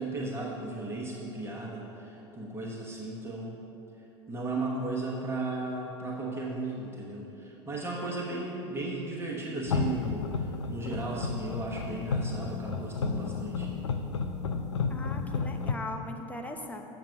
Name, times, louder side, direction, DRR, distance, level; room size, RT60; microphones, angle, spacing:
voice 1, 0.0-3.6 4.3-13.7, right 2 dB, 15° right, -2 dB, 1.1 m, -35 dB
sound 1, 9.7-15.7, left 4 dB, 85° left, 0.5 m, -32 dB
voice 2, 14.9-16.8, left 2 dB, 10° left, 3 dB, 0.8 m, -39 dB
7.4 x 6.0 x 5.8 m, 3.0 s
figure-of-eight pair, 80°, 15 cm